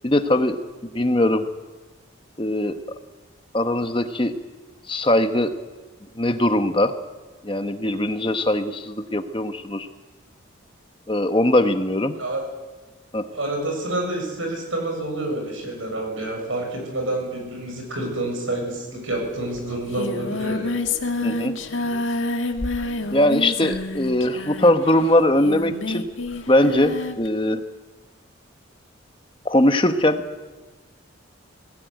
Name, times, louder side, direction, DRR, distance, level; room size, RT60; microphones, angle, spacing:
voice 1, 0.0-0.6 0.9-1.5 2.4-2.8 3.5-4.3 4.9-5.5 6.2-6.9 7.4-9.9 11.1-12.2 13.1-13.3 21.2-21.5 23.1-26.0 26.5-27.6 29.4-30.2, left 1 dB, 25° left, 8 dB, 1.0 m, -20 dB
voice 2, 13.3-20.7, right 1 dB, 80° right, 2 dB, 7.3 m, -28 dB
Singing, 19.2-19.3 19.5-27.3, left 2 dB, 75° left, 1.7 m, -28 dB
21.0 x 16.5 x 9.2 m, 1.3 s
head